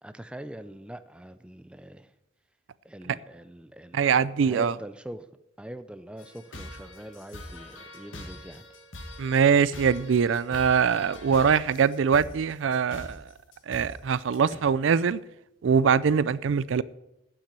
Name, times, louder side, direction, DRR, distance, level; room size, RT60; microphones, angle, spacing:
voice 1, 0.0-2.1 2.8-4.0 4.4-5.3 5.6-8.7, right 1 dB, 5° right, 0.4 m, -42 dB
voice 2, 3.9-4.7 9.2-13.2 13.7-15.2 15.6-16.8, right 6 dB, 75° right, 0.4 m, -23 dB
sound 1, 6.2-14.5, left 1 dB, 80° left, 1.9 m, -43 dB
8.9 x 7.4 x 8.8 m
head